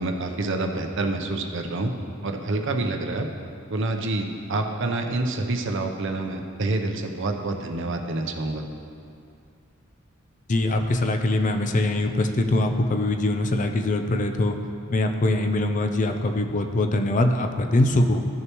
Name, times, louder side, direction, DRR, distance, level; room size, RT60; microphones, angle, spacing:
voice 1, 0.0-1.9 2.2-3.3 3.7-8.6, right 2 dB, 65° right, 4 dB, 0.7 m, -27 dB
voice 2, 10.5-14.6 14.9-18.3, left 1 dB, 40° left, 5 dB, 0.5 m, -23 dB
14.0 x 6.5 x 3.0 m, 2.5 s
head